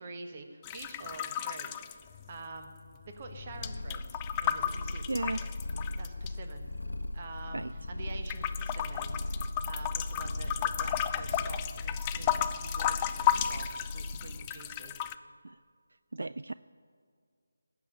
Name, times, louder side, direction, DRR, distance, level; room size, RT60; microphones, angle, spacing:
voice 1, 0.0-2.0 2.3-2.7 3.0-5.5 6.0-6.6 7.1-14.9, right 3 dB, 30° right, 5 dB, 1.5 m, -47 dB
sound 1, 0.6-2.7 2.9-6.3 6.9-7.9 8.3-15.2, left 11 dB, 15° left, 0.4 m, -34 dB
Purr, 3.3-14.6, left 2 dB, 70° left, 1.1 m, -38 dB
voice 2, 5.1-5.4 7.5-7.7 15.4-15.6 16.1-16.5, right 2 dB, 65° right, 15 dB, 0.3 m, -34 dB
19.0 x 7.4 x 8.5 m, 2.1 s
figure-of-eight pair, 160°, 0 cm